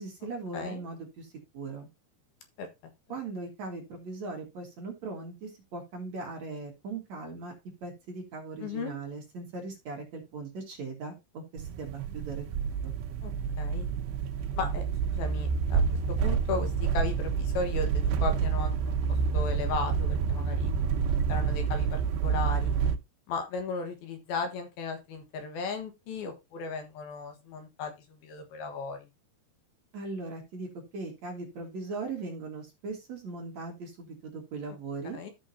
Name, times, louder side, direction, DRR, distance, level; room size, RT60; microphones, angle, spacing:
voice 1, 0.0-1.9 3.1-7.5 7.8-12.9 29.9-30.7 30.9-35.2, right 3 dB, 50° right, 1 dB, 2.7 m, -39 dB
voice 2, 8.6-8.9 13.2-13.3 13.6-13.9 14.6-14.8 15.1-15.8 16.2-19.0 19.3-20.7 21.3-22.7 23.3-29.1 35.1-35.3, left 4 dB, 70° left, 5 dB, 3.2 m, -35 dB
sound 1, 11.6-23.0, right 6 dB, 85° right, 3.0 m, -28 dB
13.0 x 6.2 x 2.8 m, 0.23 s
omnidirectional pair, 4.7 m